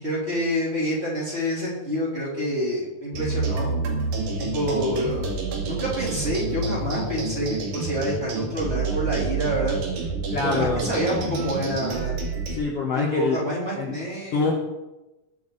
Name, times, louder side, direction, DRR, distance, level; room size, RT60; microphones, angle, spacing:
voice 1, 0.0-3.7 4.4-5.4 5.6-9.8 10.4-12.1 12.9-14.4, equal, 15° right, -6 dB, 4.1 m, -27 dB
sound 1, 3.1-12.6, right 3 dB, 60° right, 3.3 m, -28 dB
voice 2, 10.3-10.8 12.5-13.5 13.8-13.9 14.3-14.5, left 4 dB, 55° left, -2 dB, 2.1 m, -25 dB
20.5 x 7.0 x 4.2 m, 1.0 s
omnidirectional pair, 4.0 m